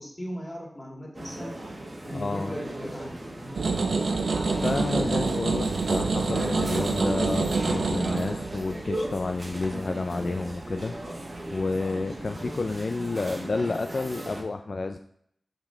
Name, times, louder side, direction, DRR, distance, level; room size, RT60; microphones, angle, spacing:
voice 1, 0.0-1.5 2.0-3.1, equal, 20° left, -2 dB, 2.1 m, -38 dB
sound 1, 1.1-14.4, right 1 dB, 45° right, 1.2 m, -37 dB
voice 2, 2.1-2.6 4.6-11.0 11.5-15.0, left 3 dB, 55° left, 7 dB, 0.3 m, -30 dB
sound 2, 3.6-11.7 12.2-12.8, right 3 dB, 80° right, 0.7 m, -27 dB
5.4 x 5.1 x 3.8 m, 0.68 s
wide cardioid pair, 70°, 0 cm